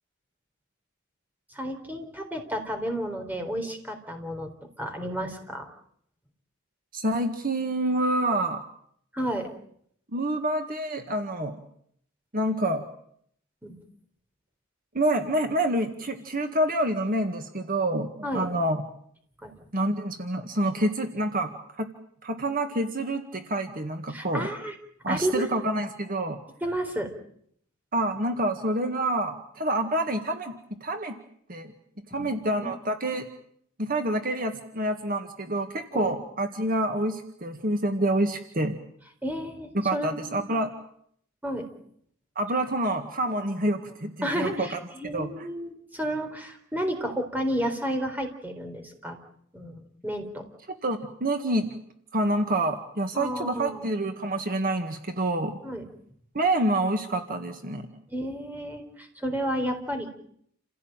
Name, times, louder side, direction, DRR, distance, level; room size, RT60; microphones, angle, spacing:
voice 1, 1.5-4.5 4.8-5.7 9.1-9.5 13.6-13.7 18.2-18.5 19.4-19.5 24.1-24.7 25.1-25.5 26.6-27.1 32.1-32.7 35.9-36.1 39.2-40.5 41.4-41.7 44.2-49.2 49.5-50.4 53.1-53.8 55.6-55.8 58.1-60.1, equal, 10° right, 4 dB, 4.1 m, -32 dB
voice 2, 6.9-8.6 10.1-11.6 12.3-12.8 14.9-18.8 19.7-21.9 22.2-24.5 25.0-26.4 27.9-31.2 31.5-31.7 32.1-33.3 33.8-38.8 39.7-40.7 42.4-44.7 45.1-45.3 50.7-51.8 52.1-55.6 56.3-57.9, right 1 dB, 45° right, 6 dB, 1.9 m, -27 dB
29.0 x 16.5 x 9.1 m, 0.68 s
head